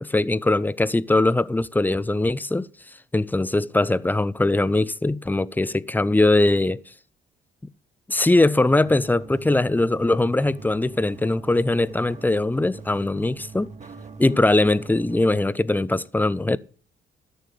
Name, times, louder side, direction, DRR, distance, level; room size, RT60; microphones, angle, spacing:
voice 1, 0.0-2.7 3.1-6.8 8.1-13.7 14.2-16.6, left 2 dB, 10° left, 0.5 m, -21 dB
sound 1, 8.7-15.5, right 4 dB, 35° right, 1.7 m, -42 dB
13.0 x 6.7 x 6.7 m
cardioid pair, 90°, 20 cm